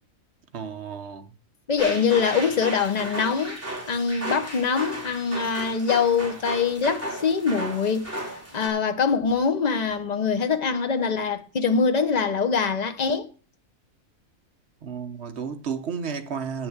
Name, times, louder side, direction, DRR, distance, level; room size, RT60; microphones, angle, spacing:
voice 1, 0.5-1.3 14.8-16.7, right 6 dB, 55° right, 1.1 m, -32 dB
voice 2, 1.7-3.6 3.9-8.1 8.5-13.3, left 5 dB, 35° left, 0.9 m, -23 dB
sound 1, 1.8-8.7, right 1 dB, 10° right, 3.1 m, -35 dB
9.3 x 6.2 x 8.0 m
omnidirectional pair, 1.4 m